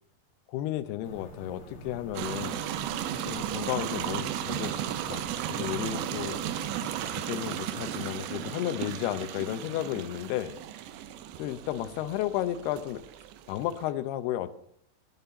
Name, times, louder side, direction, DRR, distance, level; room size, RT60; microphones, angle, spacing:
voice 1, 0.5-2.7 3.3-4.7 5.1-6.4 7.1-10.6 11.4-13.0 13.5-14.5, left 13 dB, 75° left, 11 dB, 2.6 m, -33 dB
sound 1, 1.0-7.2, right 1 dB, 50° left, 1.7 m, -45 dB
sound 2, 2.1-13.9, right 11 dB, 80° right, 3.1 m, -35 dB
sound 3, 4.7-9.8, right 1 dB, 10° right, 4.1 m, -58 dB
18.0 x 7.3 x 7.0 m, 0.70 s
omnidirectional pair, 5.1 m